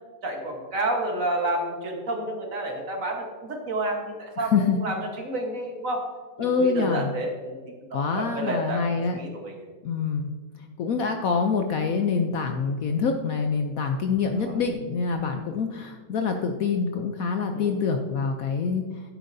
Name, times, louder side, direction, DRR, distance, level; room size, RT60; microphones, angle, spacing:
voice 1, 0.2-6.1 6.4-9.6 14.4-14.6 17.5-17.8, right 1 dB, 50° right, 2 dB, 1.6 m, -30 dB
voice 2, 4.4-4.8 6.4-7.1 7.9-9.2 9.8-10.3 10.8-18.8, left 5 dB, 65° left, 5 dB, 0.9 m, -25 dB
11.5 x 9.4 x 2.7 m, 1.5 s
omnidirectional pair, 1.9 m